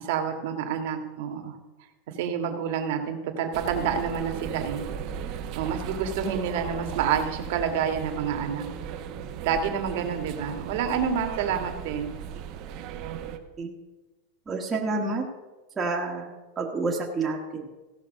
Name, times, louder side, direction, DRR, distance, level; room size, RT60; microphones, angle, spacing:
voice 1, 0.0-1.5 2.1-4.8 5.5-8.7 9.4-12.1, right 7 dB, 60° right, 5 dB, 1.7 m, -28 dB
sound 1, 3.5-13.4, right 8 dB, 40° right, 1.0 m, -36 dB
voice 2, 14.5-15.2 15.8-16.3 16.6-17.6, right 3 dB, 15° right, -2 dB, 1.4 m, -28 dB
16.0 x 5.8 x 6.4 m, 1.2 s
supercardioid pair, 160°, 0 cm